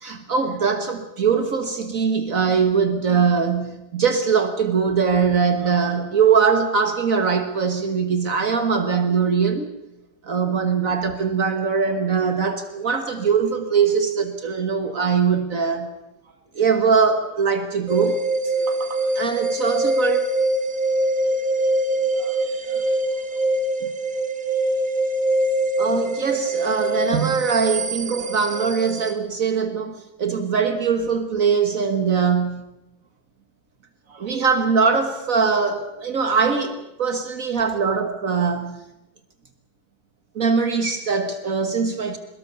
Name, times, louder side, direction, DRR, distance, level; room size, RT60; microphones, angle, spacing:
voice 1, 0.0-9.7 10.2-15.9 16.6-20.3 22.1-22.9 23.3-23.4 23.8-23.9 25.8-32.7 34.1-38.8 40.4-42.2, right 5 dB, 60° right, 1.8 m, -22 dB
sound 1, 17.9-29.1, right 1 dB, 30° right, 1.6 m, -23 dB
23.0 x 21.5 x 6.9 m
omnidirectional pair, 1.6 m